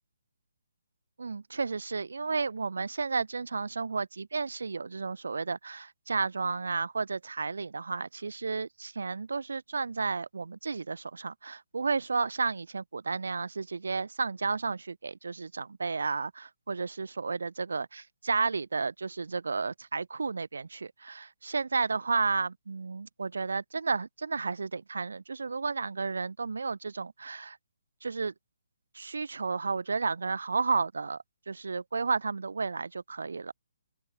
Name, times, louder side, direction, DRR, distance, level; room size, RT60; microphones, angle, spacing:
voice 1, 1.2-27.6 28.0-28.3 28.9-33.5, right 4 dB, 85° right, 0.7 m, -32 dB
open air
hypercardioid pair, 165°, 0 cm